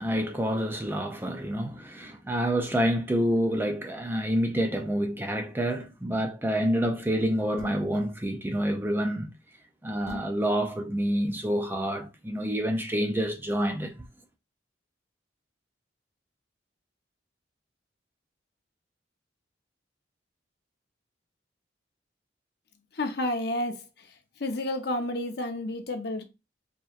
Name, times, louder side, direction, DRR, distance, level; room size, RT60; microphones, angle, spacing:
voice 1, 0.0-9.3 9.8-13.9, equal, 10° right, 0.4 m, -28 dB
sound 1, 7.6-8.0 10.1-10.4, left 4 dB, 35° left, 1.2 m, -41 dB
voice 2, 22.9-23.9 24.4-26.2, left 1 dB, 55° left, 0.8 m, -30 dB
4.6 x 2.9 x 2.4 m
head